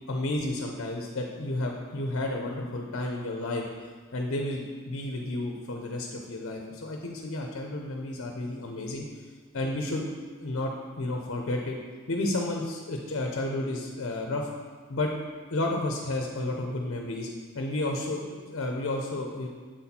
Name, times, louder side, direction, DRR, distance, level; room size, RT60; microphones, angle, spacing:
voice 1, 0.1-3.6 4.1-9.1 9.5-10.1 10.4-10.7 11.0-11.8 12.1-14.5 14.9-15.1 15.5-17.3 17.5-19.5, left 2 dB, 60° left, 1 dB, 0.7 m, -31 dB
7.6 x 4.2 x 4.2 m, 1.5 s
head